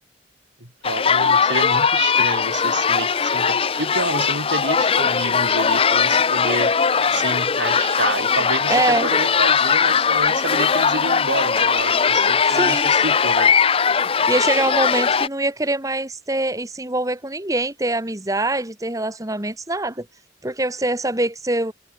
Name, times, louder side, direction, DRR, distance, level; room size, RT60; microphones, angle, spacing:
voice 1, 0.6-6.7 7.1-13.5, right 3 dB, 80° right, 7.5 m, -29 dB
sound 1, 0.8-15.3, left 6 dB, 30° left, 0.5 m, -19 dB
voice 2, 8.7-9.1 12.5-12.9 14.3-20.1 20.4-21.7, right 2 dB, 20° right, 1.8 m, -23 dB
head